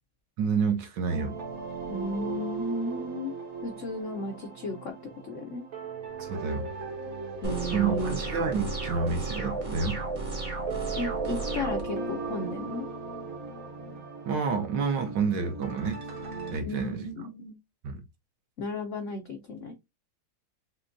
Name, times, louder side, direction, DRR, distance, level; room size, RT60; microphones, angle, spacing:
voice 1, 0.4-1.4 6.2-6.6 7.7-10.0 14.2-16.0 16.5-17.1 17.8-17.9, right 5 dB, 70° right, 1.2 m, -29 dB
sound 1, 1.1-16.6, right 4 dB, 50° right, 0.9 m, -38 dB
voice 2, 1.9-3.3 3.6-4.9 5.2-5.6 7.4-8.2 10.9-12.8 16.6-17.5 18.6-19.7, left 2 dB, 75° left, 0.6 m, -34 dB
sound 2, 7.4-11.8, right 2 dB, 30° right, 0.6 m, -33 dB
6.1 x 2.2 x 2.5 m
omnidirectional pair, 2.2 m